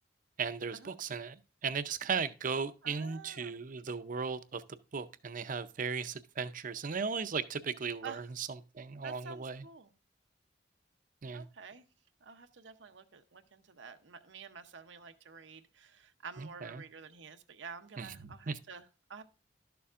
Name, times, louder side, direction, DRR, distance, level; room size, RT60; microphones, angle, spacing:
voice 1, 0.4-1.4 1.6-4.6 4.9-8.5 8.7-9.6 11.2-11.4 16.4-16.8 18.0-18.2 18.5-18.6, right 5 dB, 45° right, 0.6 m, -36 dB
voice 2, 2.8-3.5 8.0-8.3 9.0-9.9 11.3-11.9 12.2-19.2, right 5 dB, 85° right, 0.8 m, -49 dB
12.0 x 6.9 x 2.5 m
head